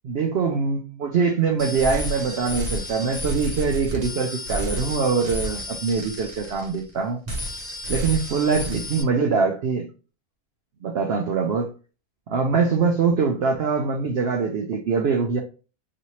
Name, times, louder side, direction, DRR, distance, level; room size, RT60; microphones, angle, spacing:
voice 1, 0.0-7.2 7.9-9.9 10.8-11.7 12.3-15.4, right 5 dB, 90° right, 0.5 m, -23 dB
sound 1, 1.6-6.9 7.2-9.0, left 1 dB, 35° right, 0.9 m, -31 dB
3.2 x 2.8 x 3.0 m
omnidirectional pair, 1.6 m